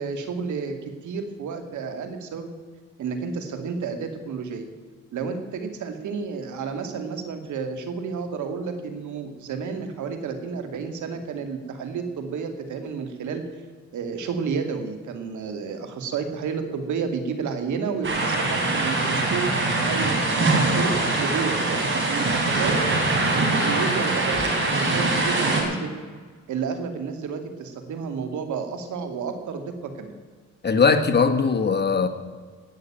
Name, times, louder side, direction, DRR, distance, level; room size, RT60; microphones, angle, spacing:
voice 1, 0.0-2.5 3.0-4.7 5.1-13.4 13.9-22.9 23.3-24.4 24.7-25.9 26.5-30.1, right 5 dB, 75° right, 7 dB, 2.3 m, -31 dB
sound 1, 18.0-25.6, right 2 dB, 40° right, 4.5 m, -23 dB
voice 2, 30.6-32.1, left 5 dB, 35° left, 7 dB, 1.5 m, -20 dB
17.5 x 6.7 x 8.9 m, 1.5 s
cardioid pair, 90°, 30 cm